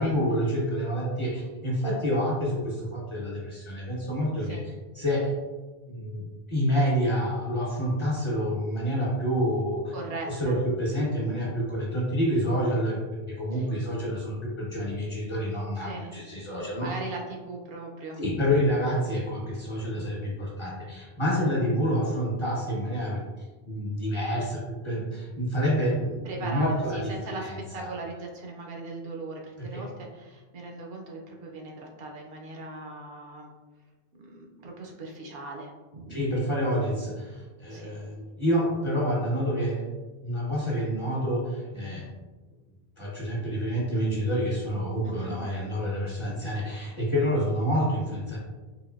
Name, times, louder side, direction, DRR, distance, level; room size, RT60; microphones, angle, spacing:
voice 1, 0.0-5.3 5.9-9.9 10.2-13.0 13.3-16.9 18.2-23.2 23.6-27.9 29.7-29.8 36.1-39.8 40.2-42.1 43.0-48.4, equal, 30° left, -5 dB, 0.8 m, -28 dB
voice 2, 9.9-10.6 13.5-13.7 15.8-16.2 16.8-18.2 18.5-18.7 26.2-33.5 34.2-36.3 37.7-38.0 45.0-45.4, right 3 dB, 70° right, 0 dB, 0.8 m, -39 dB
3.7 x 2.6 x 2.3 m, 1.2 s
omnidirectional pair, 1.1 m